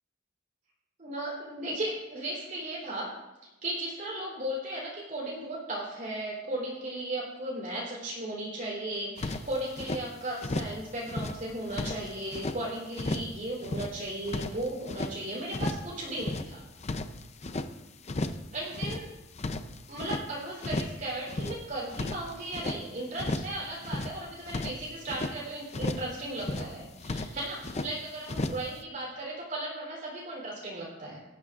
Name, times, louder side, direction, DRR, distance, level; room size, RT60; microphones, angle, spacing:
voice 1, 1.0-3.1 3.6-16.6 18.5-19.1 19.9-31.2, right 1 dB, 45° right, -5 dB, 3.9 m, -36 dB
sound 1, 9.2-10.0 10.4-10.8 11.1-12.6 12.9-13.4 13.6-15.1 15.5-15.9 16.2-17.7 18.1-18.5 18.7-20.3 20.6-21.0 21.3-22.8 23.2-23.6 23.8-25.4 25.7-26.1 26.4-26.8 27.0-27.9 28.3-28.7, left 2 dB, 35° left, 0.7 m, -34 dB
19.5 x 13.5 x 2.5 m, 1.0 s
head